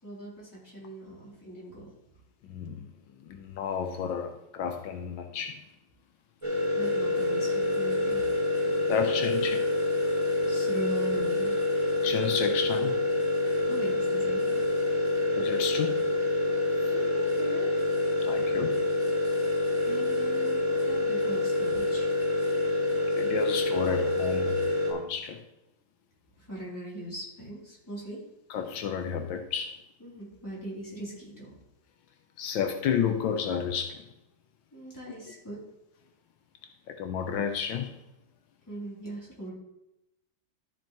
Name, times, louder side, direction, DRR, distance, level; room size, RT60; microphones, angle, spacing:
voice 1, 0.0-1.9 6.7-8.3 10.4-11.7 13.6-14.7 16.9-17.7 19.8-22.1 26.3-28.2 30.0-31.6 34.7-35.6 38.7-39.5, right 1 dB, 10° left, -6 dB, 3.0 m, -40 dB
voice 2, 2.4-2.9 3.2-5.7 8.7-9.7 12.0-13.0 15.3-16.1 16.8-16.9 18.2-18.8 23.2-24.6 24.9-25.4 28.5-29.8 32.4-34.0 36.9-38.0, left 7 dB, 80° left, 6 dB, 1.5 m, -31 dB
sound 1, 6.4-24.9, left 2 dB, 15° right, 2.2 m, -27 dB
13.0 x 6.0 x 3.0 m, 0.88 s
omnidirectional pair, 2.1 m